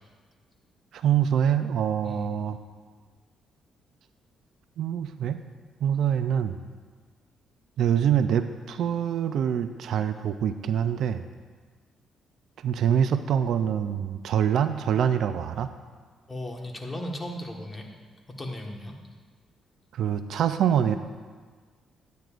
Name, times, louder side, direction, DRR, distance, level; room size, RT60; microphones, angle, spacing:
voice 1, 0.9-2.6 4.8-5.4 5.8-6.6 7.8-11.2 12.6-15.7 19.9-21.0, right 9 dB, 70° right, 10 dB, 0.4 m, -25 dB
voice 2, 16.3-17.9 18.4-19.0, left 1 dB, 20° left, 1 dB, 1.4 m, -36 dB
12.0 x 9.2 x 2.5 m, 1.5 s
cardioid pair, 90°, 0 cm